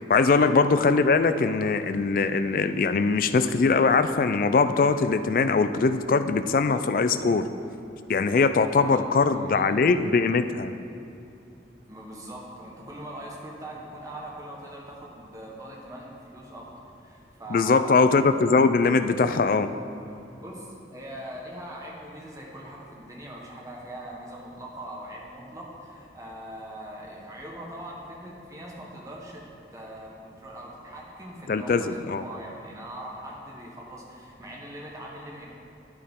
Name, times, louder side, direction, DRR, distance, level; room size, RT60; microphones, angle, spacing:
voice 1, 0.1-7.5 8.1-10.7 17.5-19.7 31.5-32.2, left 4 dB, 50° left, 11 dB, 0.3 m, -21 dB
voice 2, 8.7-9.8 11.9-18.0 20.4-29.5 29.7-35.5, right 1 dB, 20° right, -2 dB, 1.2 m, -41 dB
9.3 x 8.8 x 3.7 m, 2.8 s
head